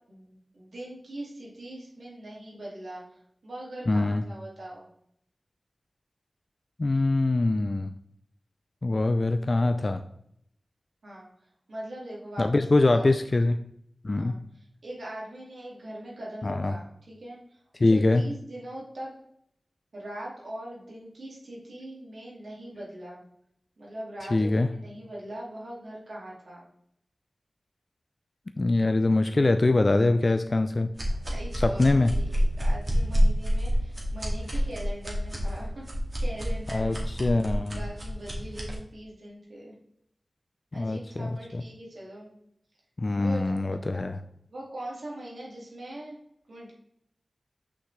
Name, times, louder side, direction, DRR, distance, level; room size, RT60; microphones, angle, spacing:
voice 1, 0.1-3.0 3.4-4.9 11.0-11.3 11.7-13.1 14.2-14.4 14.8-19.1 19.9-23.2 23.8-26.7 31.3-35.8 36.2-37.0 37.5-39.8 40.7-42.3 43.2-43.4 43.7-44.1 44.5-46.2 46.5-46.7, right 1 dB, 80° right, -5 dB, 2.2 m, -41 dB
voice 2, 3.9-4.2 6.8-7.9 8.8-10.0 12.4-13.6 14.0-14.3 16.4-16.7 17.8-18.2 24.3-24.7 28.6-30.9 31.6-32.1 36.7-37.8 40.8-41.6 43.0-44.2, left 2 dB, 50° left, 9 dB, 0.3 m, -23 dB
sound 1, 30.9-38.8, equal, 40° right, 2.1 m, -28 dB
6.1 x 5.8 x 3.2 m, 0.72 s
cardioid pair, 45°, 0 cm